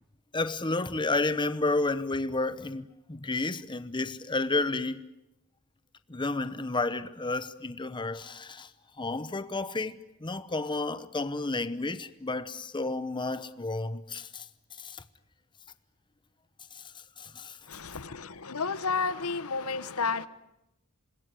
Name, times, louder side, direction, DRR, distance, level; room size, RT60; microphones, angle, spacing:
voice 1, 0.3-5.1 6.1-8.7 9.0-14.5 14.8-15.0 16.7-16.8 17.2-17.6, left 2 dB, 20° left, 0.9 m, -31 dB
voice 2, 17.7-20.3, left 4 dB, 85° left, 1.2 m, -31 dB
27.0 x 20.5 x 9.9 m
head